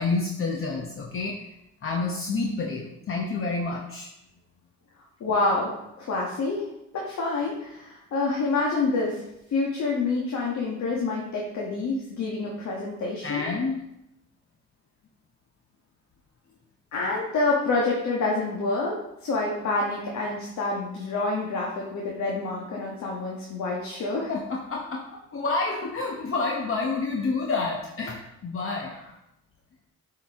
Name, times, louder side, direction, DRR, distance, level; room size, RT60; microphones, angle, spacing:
voice 1, 0.0-1.5 1.8-4.1 13.2-13.8 24.3-25.0 25.3-28.9, left 3 dB, 45° left, 0 dB, 1.0 m, -29 dB
voice 2, 5.2-6.7 6.9-9.2 9.5-13.5 16.9-19.0 19.2-24.3, left 3 dB, 65° left, -2 dB, 1.5 m, -27 dB
7.6 x 4.8 x 3.6 m, 0.83 s
cardioid pair, 90°, 30 cm